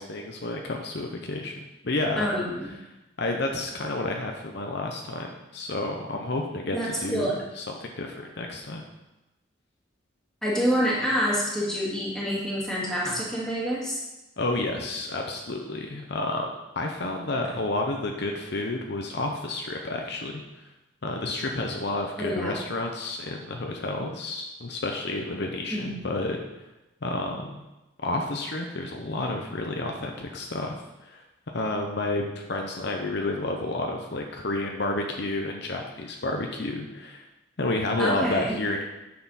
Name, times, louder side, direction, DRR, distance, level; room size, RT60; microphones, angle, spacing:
voice 1, 0.0-1.5 1.8-2.4 3.2-8.8 14.4-16.5 16.8-20.4 21.0-26.4 27.0-27.6 28.0-31.2 31.5-37.2 37.6-38.8, left 2 dB, 55° left, 2 dB, 0.8 m, -30 dB
voice 2, 2.2-2.7 6.7-7.4 10.4-14.0 22.2-22.6 25.7-26.0 38.0-38.6, equal, 5° left, -6 dB, 2.1 m, -27 dB
9.4 x 6.7 x 4.1 m, 1.0 s
head